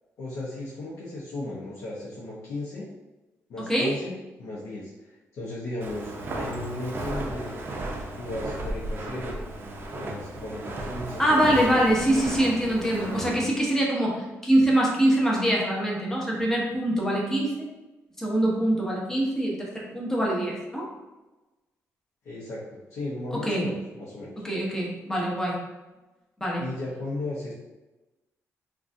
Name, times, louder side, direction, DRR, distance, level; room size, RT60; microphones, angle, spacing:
voice 1, 0.2-2.9 3.5-7.6 8.2-9.4 9.9-11.8 22.2-24.4 26.6-27.5, left 2 dB, 70° left, -7 dB, 0.7 m, -35 dB
Walk footsteps, 5.8-13.5, right 1 dB, 40° right, 0.5 m, -34 dB
voice 2, 11.2-17.7 18.2-20.8 23.4-23.6 24.4-25.6 26.4-26.6, right 1 dB, 10° left, -4 dB, 0.7 m, -24 dB
3.7 x 2.3 x 2.5 m, 1.1 s
cardioid pair, 130°, 6 cm